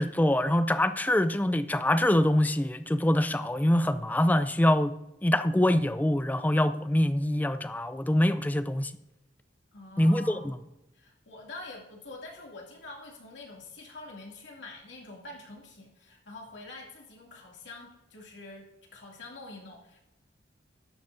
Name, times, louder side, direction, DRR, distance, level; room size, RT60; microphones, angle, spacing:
voice 1, 0.0-4.9 5.2-8.9 10.0-10.5, left 1 dB, 10° left, 0.4 m, -24 dB
voice 2, 9.7-10.5 10.9-20.0, left 2 dB, 75° left, 2.5 m, -46 dB
13.0 x 10.5 x 2.6 m
head